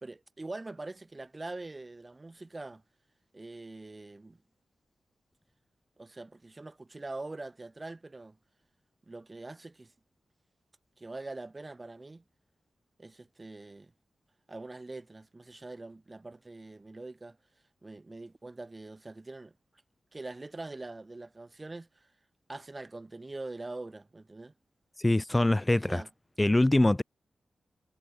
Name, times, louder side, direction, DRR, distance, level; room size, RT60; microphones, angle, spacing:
voice 1, 0.0-2.8 3.3-4.4 6.0-8.4 9.1-9.9 11.0-12.2 13.0-13.9 14.5-17.4 17.8-19.5 20.1-22.1 22.5-24.5 25.7-26.1, right 2 dB, 20° right, 1.7 m, -43 dB
voice 2, 25.0-26.0 26.4-27.0, left 1 dB, 10° left, 0.5 m, -24 dB
wide cardioid pair, 150°, 0 cm